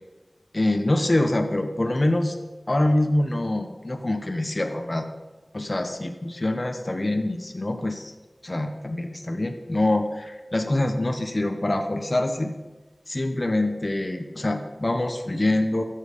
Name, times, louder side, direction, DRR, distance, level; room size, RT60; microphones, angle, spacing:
voice 1, 0.5-2.4 2.7-5.1 5.5-8.1 8.4-12.5 13.1-15.8, left 1 dB, 45° left, 5 dB, 0.9 m, -25 dB
13.0 x 7.5 x 5.3 m, 1.2 s
wide cardioid pair, 50°, 0 cm